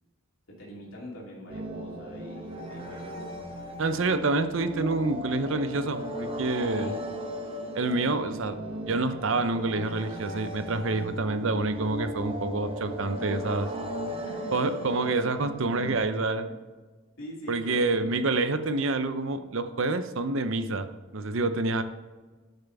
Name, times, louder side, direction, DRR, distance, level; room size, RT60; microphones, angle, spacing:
voice 1, 0.5-3.4 6.7-7.1 8.3-8.5 14.1-14.7 16.4-16.5 17.2-18.1, equal, 65° left, -5 dB, 2.7 m, -43 dB
sound 1, 1.5-16.0, equal, 25° right, 0.9 m, -37 dB
voice 2, 3.8-6.9 7.7-8.6 8.9-13.7 14.5-16.5 17.5-20.9 21.1-21.8, right 3 dB, 60° right, 10 dB, 0.6 m, -27 dB
9.9 x 6.8 x 3.5 m, 1.3 s
head